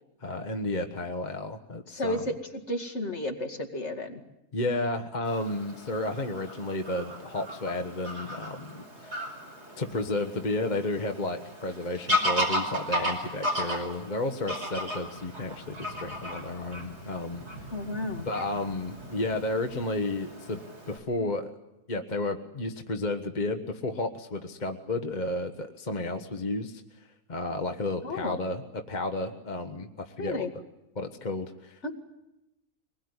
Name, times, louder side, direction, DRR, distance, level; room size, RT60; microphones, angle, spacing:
voice 1, 0.2-2.2 4.5-9.2 9.8-17.4 18.2-20.6 20.9-21.5 21.9-26.8 27.3-30.5 31.0-31.9, left 2 dB, 35° left, 5 dB, 1.3 m, -32 dB
voice 2, 1.9-2.3 2.7-4.2 17.7-18.3 28.0-28.4 30.2-30.5 31.8-32.0, left 1 dB, 50° left, 3 dB, 2.5 m, -32 dB
Fowl / Bird vocalization bird call bird song, 5.2-21.0, equal, 50° right, 5.4 m, -35 dB
24.0 x 21.0 x 9.7 m, 0.93 s
omnidirectional pair, 1.5 m